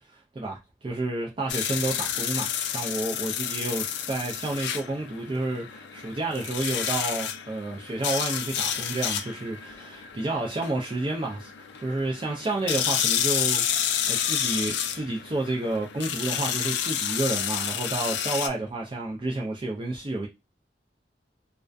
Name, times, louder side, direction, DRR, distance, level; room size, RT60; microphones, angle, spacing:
voice 1, 0.1-11.5 11.8-20.3, right 2 dB, 30° right, 0.3 m, -30 dB
sound 1, 1.5-18.5, left 9 dB, 75° left, 0.3 m, -30 dB
2.4 x 2.2 x 2.4 m
head